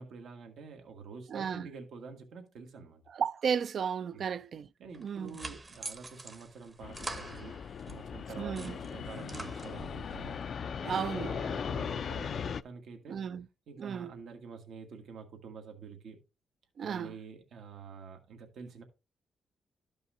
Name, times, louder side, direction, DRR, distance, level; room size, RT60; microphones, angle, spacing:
voice 1, 0.0-3.0 4.1-4.3 4.8-13.2 13.7-16.2 16.8-18.8, right 5 dB, 80° right, 1.5 m, -47 dB
voice 2, 1.3-1.7 3.1-4.7 5.0-5.4 8.4-8.8 10.8-11.4 13.1-13.5 13.8-14.2 16.8-17.2, right 7 dB, 60° right, 0.4 m, -34 dB
sound 1, 4.9-8.0 8.4-10.1, right 3 dB, 30° right, 0.9 m, -45 dB
Fixed-wing aircraft airplane, 6.8-12.6, left 7 dB, 55° left, 0.4 m, -38 dB
13.0 x 5.5 x 2.6 m
cardioid pair, 105°, 0 cm